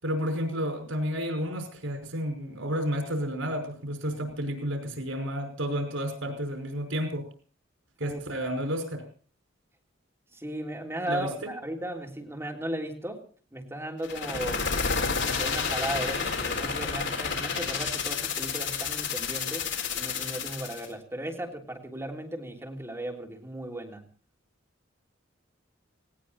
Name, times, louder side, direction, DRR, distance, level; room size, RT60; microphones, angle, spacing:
voice 1, 0.0-7.3 8.0-9.0 11.1-11.5, equal, 85° right, 5 dB, 5.5 m, -31 dB
voice 2, 10.3-13.2 13.5-14.6 15.2-24.1, right 1 dB, 15° right, 1 dB, 3.3 m, -36 dB
sound 1, 14.0-20.9, left 5 dB, 65° left, 4.1 m, -30 dB
19.5 x 17.5 x 4.2 m, 0.41 s
head